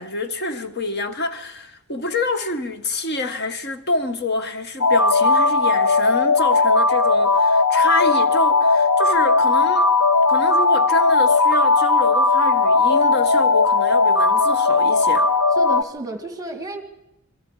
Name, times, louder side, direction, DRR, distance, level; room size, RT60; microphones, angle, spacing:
voice 1, 0.0-9.9 10.3-15.3, left 2 dB, 50° left, 1.3 m, -27 dB
sound 1, 4.8-15.8, left 3 dB, 90° left, 1.0 m, -17 dB
voice 2, 15.5-16.8, right 2 dB, 15° right, 1.6 m, -32 dB
26.5 x 23.0 x 4.9 m
head